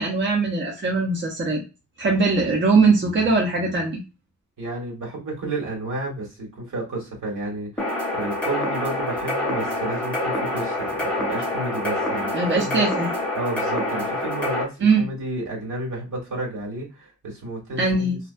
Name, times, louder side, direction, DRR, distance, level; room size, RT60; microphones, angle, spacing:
voice 1, 0.0-1.6 2.0-4.0 12.3-13.1 14.8-15.0 17.8-18.2, right 3 dB, 40° right, -1 dB, 0.6 m, -21 dB
voice 2, 4.6-7.9 8.1-12.3 12.5-12.8 13.3-18.2, right 2 dB, 75° right, -2 dB, 1.5 m, -31 dB
sound 1, 7.8-14.6, left 1 dB, 5° left, 0.8 m, -26 dB
2.6 x 2.1 x 2.5 m, 0.29 s
wide cardioid pair, 130°, 31 cm